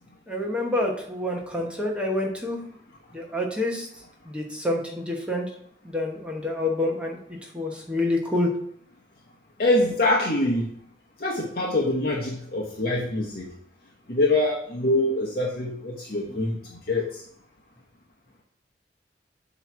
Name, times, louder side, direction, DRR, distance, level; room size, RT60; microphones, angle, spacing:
voice 1, 0.3-2.6 3.1-3.9 4.3-5.4 5.8-7.2 7.5-8.5, left 1 dB, 5° right, -1 dB, 1.0 m, -27 dB
voice 2, 9.6-10.7 11.2-13.5 14.1-17.2, left 2 dB, 55° left, -3 dB, 0.9 m, -24 dB
7.6 x 3.1 x 5.9 m, 0.66 s
head